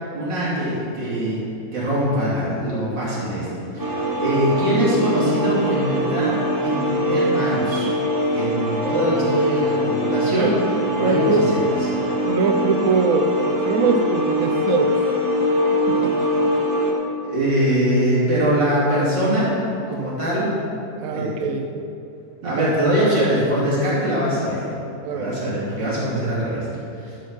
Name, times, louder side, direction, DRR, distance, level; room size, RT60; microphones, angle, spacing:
voice 1, 0.1-1.5 1.7-3.5 3.7-7.9 8.3-10.6 11.0-11.6 17.2-19.6 19.9-20.6 21.1-21.3 22.4-24.7 25.1-26.7 27.0-27.1, right 1 dB, 80° right, -8 dB, 3.6 m, -22 dB
sound 1, 3.8-16.9, equal, 15° right, 0.8 m, -22 dB
voice 2, 10.9-11.5 12.2-14.9 15.9-16.4 21.0-21.7 22.4-22.7 25.0-25.3, right 5 dB, 60° right, 5 dB, 0.9 m, -23 dB
12.0 x 5.1 x 6.0 m, 2.7 s
omnidirectional pair, 1.9 m